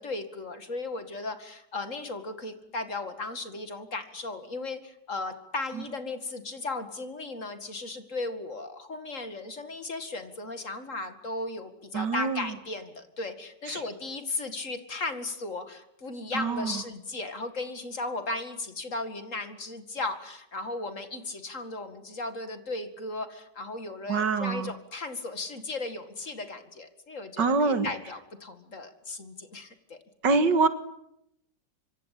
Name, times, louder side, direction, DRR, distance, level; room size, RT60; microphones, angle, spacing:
voice 1, 0.0-30.0, left 2 dB, 45° left, 8 dB, 2.6 m, -36 dB
voice 2, 11.9-12.5 13.7-13.8 16.3-16.8 24.1-24.7 27.4-27.9 30.2-30.7, right 4 dB, 80° right, 10 dB, 2.4 m, -25 dB
26.0 x 24.0 x 8.5 m, 0.80 s
omnidirectional pair, 1.9 m